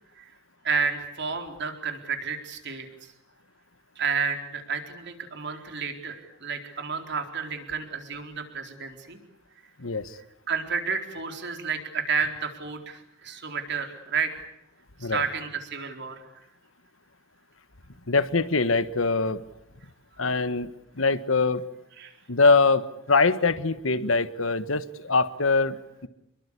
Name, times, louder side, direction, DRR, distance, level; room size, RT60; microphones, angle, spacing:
voice 1, 0.6-3.1 4.0-9.2 10.5-14.3 15.0-16.2 22.0-22.1, right 5 dB, 60° right, 5 dB, 4.2 m, -31 dB
voice 2, 9.8-10.2 15.0-15.2 18.1-19.4 20.2-21.6 22.3-26.1, left 3 dB, 75° left, 13 dB, 1.4 m, -23 dB
28.0 x 23.0 x 8.4 m, 0.83 s
head